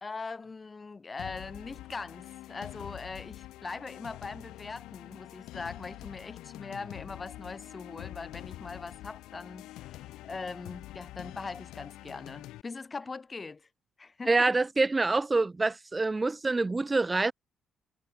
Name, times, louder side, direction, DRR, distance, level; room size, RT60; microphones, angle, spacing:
voice 1, 0.0-13.7 14.0-14.6, left 4 dB, 35° left, 1.4 m, -41 dB
sound 1, 1.2-12.6, left 16 dB, 85° left, 5.3 m, -46 dB
voice 2, 14.3-17.3, right 3 dB, 25° right, 0.5 m, -26 dB
supercardioid pair, 65°, 0 cm